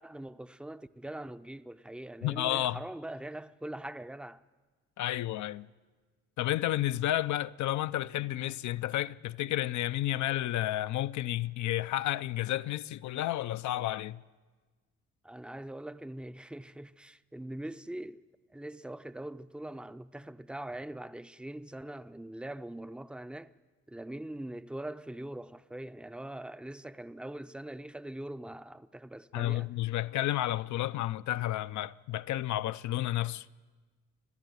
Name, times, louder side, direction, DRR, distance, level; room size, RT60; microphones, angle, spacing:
voice 1, 0.0-4.4 15.2-18.2 18.5-23.5 23.9-29.7, right 1 dB, 5° right, 0.5 m, -42 dB
voice 2, 2.2-2.8 5.0-5.7 6.4-14.2 29.3-33.5, left 14 dB, 70° left, 0.6 m, -31 dB
28.5 x 10.5 x 9.4 m
cardioid pair, 90°, 30 cm